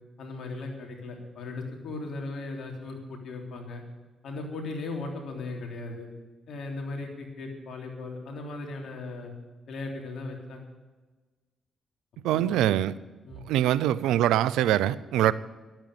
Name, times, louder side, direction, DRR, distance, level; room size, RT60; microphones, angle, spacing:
voice 1, 0.2-3.8 4.2-6.1 6.5-9.3 9.7-10.6 12.3-12.6 13.2-13.4, left 3 dB, 70° left, 2 dB, 3.3 m, -37 dB
voice 2, 12.2-12.9 13.5-15.3, right 12 dB, 85° right, 18 dB, 0.5 m, -23 dB
12.0 x 9.0 x 9.6 m, 1.3 s
supercardioid pair, 55°, 0 cm